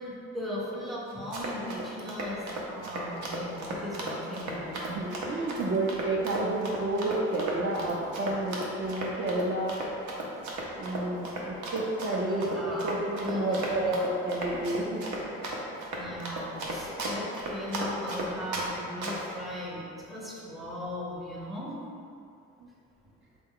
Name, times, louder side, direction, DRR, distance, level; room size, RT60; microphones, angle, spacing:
voice 1, 0.0-4.8 12.1-12.9 13.2-13.9 16.0-21.8, left 1 dB, ahead, -5 dB, 0.6 m, -38 dB
Run, 1.1-18.7 19.0-19.3, right 2 dB, 85° right, 0.7 m, -35 dB
voice 2, 4.9-9.8 10.8-15.4 22.6-22.7, right 2 dB, 40° right, -3 dB, 0.4 m, -30 dB
3.7 x 2.2 x 3.6 m, 2.6 s
cardioid pair, 90°, 30 cm